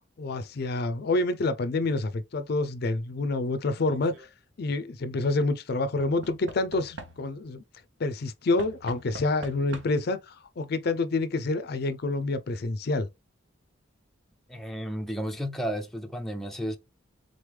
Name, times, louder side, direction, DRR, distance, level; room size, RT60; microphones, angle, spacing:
voice 1, 0.2-4.3 4.6-7.6 8.0-13.1, left 2 dB, 55° left, 0.4 m, -28 dB
Knock / Wood, 3.8-4.3 6.0-7.5 8.6-10.2 11.2-11.3 11.5-11.6, right 2 dB, 70° right, 0.9 m, -45 dB
voice 2, 14.5-16.8, equal, ahead, 0.6 m, -32 dB
3.9 x 3.2 x 3.3 m
head